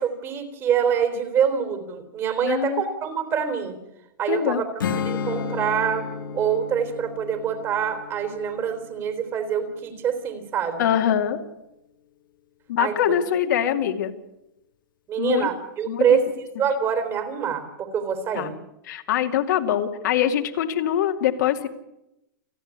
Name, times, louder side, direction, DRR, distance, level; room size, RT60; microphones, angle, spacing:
voice 1, 0.0-3.8 4.2-4.7 5.1-6.1 6.3-10.9 12.8-13.2 15.1-16.3 16.6-18.5, right 7 dB, 25° right, 8 dB, 3.7 m, -25 dB
voice 2, 2.4-2.8 4.3-4.6 10.8-11.4 12.7-14.1 15.2-15.5 15.9-16.2 18.3-18.5 18.8-21.7, left 10 dB, 65° left, 4 dB, 2.4 m, -23 dB
Strum, 4.8-10.1, left 6 dB, 90° left, 2.1 m, -33 dB
29.5 x 10.5 x 9.7 m, 0.88 s
hypercardioid pair, 150°, 11 cm